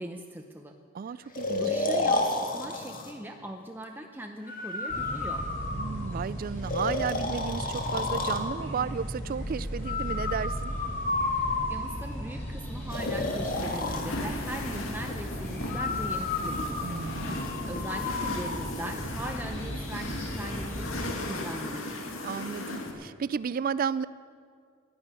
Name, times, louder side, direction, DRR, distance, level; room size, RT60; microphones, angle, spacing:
voice 1, 0.0-0.8 1.1-5.5 11.7-21.9, right 1 dB, 10° right, 3 dB, 0.7 m, -40 dB
voice 2, 0.9-1.6 5.7-10.7 16.8-17.5 22.2-24.1, right 6 dB, 45° right, 17 dB, 0.3 m, -33 dB
Breathing, 1.3-3.1 4.5-6.1 6.7-8.5 9.9-12.1 12.9-14.1 15.7-18.5, left 3 dB, 45° left, 1.7 m, -31 dB
sound 1, 4.9-21.1, equal, 10° left, 3.0 m, -37 dB
sound 2, 12.9-22.9, left 1 dB, 75° left, 2.0 m, -37 dB
11.5 x 11.0 x 8.9 m, 2.2 s
head